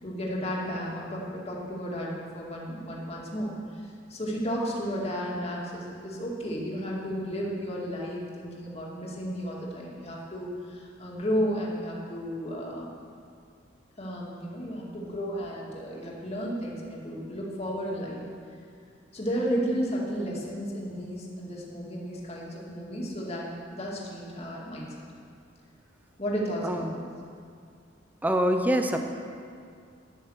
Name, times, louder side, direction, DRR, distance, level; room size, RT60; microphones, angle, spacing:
voice 1, 0.0-12.9 14.0-18.2 19.1-24.9 26.2-27.0, equal, 30° left, -4 dB, 2.4 m, -33 dB
voice 2, 26.6-27.0 28.2-29.0, equal, 10° right, 5 dB, 0.7 m, -25 dB
12.0 x 10.0 x 6.5 m, 2.3 s
head